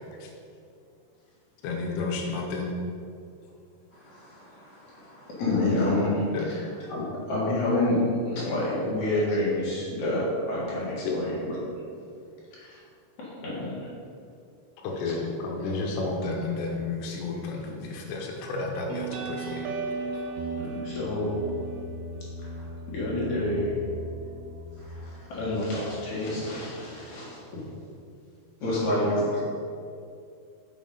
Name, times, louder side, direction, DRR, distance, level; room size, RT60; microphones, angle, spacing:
voice 1, 1.6-2.8 6.3-6.5 11.0-11.2 14.8-19.6 20.1-20.2 28.9-29.3, left 3 dB, 80° left, 0 dB, 3.0 m, -31 dB
voice 2, 3.9-5.4 22.4-22.7 24.8-25.3, equal, 40° right, -11 dB, 1.6 m, -54 dB
voice 3, 5.4-6.6 6.9-11.6 12.5-12.8 13.2-13.9 20.6-21.3 22.9-23.8 25.3-27.6 28.6-29.3, left 1 dB, 50° left, -7 dB, 2.8 m, -28 dB
sound 1, 18.9-26.1, right 3 dB, 80° right, 2.4 m, -37 dB
7.0 x 6.1 x 5.4 m, 2.4 s
omnidirectional pair, 5.0 m